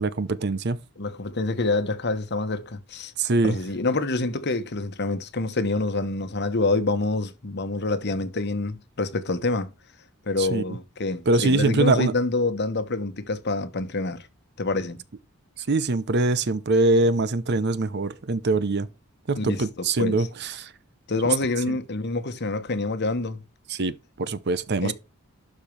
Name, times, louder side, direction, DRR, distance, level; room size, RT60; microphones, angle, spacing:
voice 1, 0.0-0.8 3.2-3.6 10.4-10.6 11.3-12.1 15.6-18.9 19.3-20.7 21.7-21.8 23.7-24.9, right 2 dB, 50° right, 0.7 m, -23 dB
voice 2, 1.0-3.1 3.4-9.7 10.3-14.3 14.6-15.0 19.4-20.3 21.1-23.4 24.8-24.9, left 2 dB, 50° left, 1.1 m, -27 dB
12.0 x 4.4 x 3.3 m
head